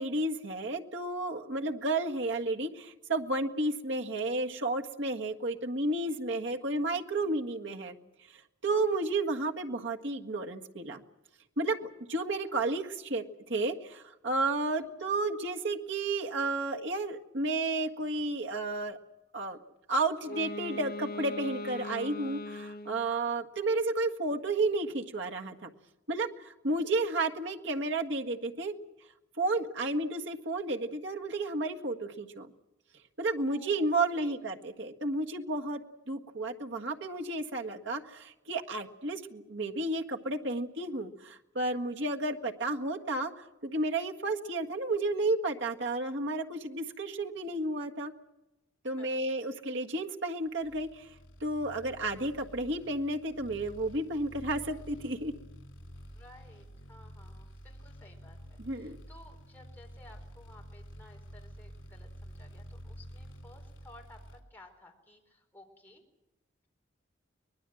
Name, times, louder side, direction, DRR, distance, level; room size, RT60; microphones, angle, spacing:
voice 1, 0.0-8.0 8.6-11.0 11.6-13.2 13.5-19.0 19.3-19.6 19.9-25.7 26.1-28.7 29.4-32.5 33.2-35.8 36.1-43.3 43.6-48.1 48.8-51.1 51.4-55.3 58.6-59.0, right 2 dB, 70° right, 2 dB, 1.7 m, -32 dB
Wind instrument woodwind instrument, 20.2-23.1, left 2 dB, 50° left, 1.2 m, -40 dB
voice 2, 33.4-34.4 47.5-47.6 49.0-49.2 56.1-64.2 64.5-66.0, left 2 dB, 10° left, 1 dB, 4.4 m, -57 dB
sound 1, 50.6-64.4, equal, 80° left, 3.4 m, -49 dB
23.5 x 20.5 x 7.8 m, 0.94 s
head